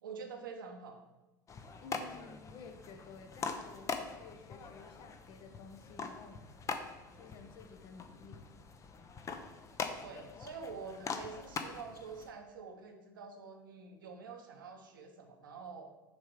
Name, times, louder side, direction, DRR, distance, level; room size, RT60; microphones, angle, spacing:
voice 1, 0.0-1.0 10.0-15.9, right 5 dB, 80° right, 4 dB, 0.8 m, -47 dB
sound 1, 1.5-12.3, left 5 dB, 30° left, 0.6 m, -43 dB
voice 2, 1.8-6.4 7.1-8.5, left 4 dB, 50° left, 5 dB, 0.9 m, -53 dB
6.2 x 3.7 x 4.9 m, 1.1 s
hypercardioid pair, 75°, 11 cm